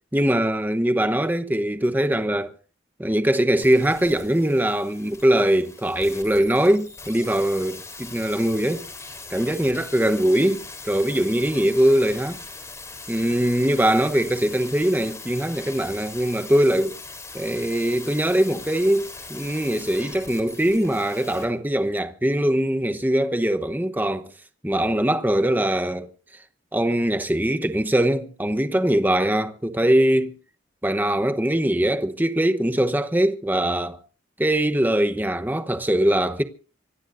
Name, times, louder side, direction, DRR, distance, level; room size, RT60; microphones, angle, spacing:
voice 1, 0.1-2.5 3.0-8.8 9.3-12.4 13.1-17.0 17.3-24.3 24.6-26.1 26.7-30.3 30.8-34.0 34.4-36.4, right 1 dB, 10° right, 0.9 m, -22 dB
sound 1, 3.6-21.5 21.7-21.8, left 3 dB, 15° left, 3.7 m, -40 dB
25.5 x 18.0 x 2.6 m
head